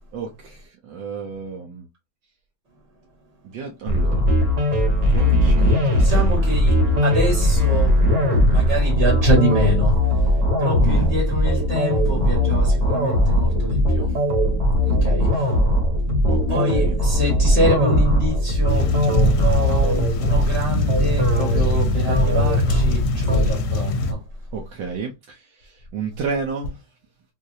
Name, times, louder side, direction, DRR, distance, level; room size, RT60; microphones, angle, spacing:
voice 1, 0.1-1.9 3.5-4.2 5.0-6.5 10.8-11.2 16.2-16.9 24.5-26.8, right 5 dB, 75° right, 1.3 m, -32 dB
sound 1, 3.9-23.5, left 1 dB, 60° right, 1.5 m, -19 dB
voice 2, 6.0-8.0 8.5-10.3 10.6-14.1 14.8-15.5 16.5-18.9 19.2-24.2, right 1 dB, 40° right, 1.3 m, -25 dB
sound 2, 18.7-24.1, left 3 dB, 70° left, 1.1 m, -22 dB
3.9 x 2.7 x 2.6 m
omnidirectional pair, 2.0 m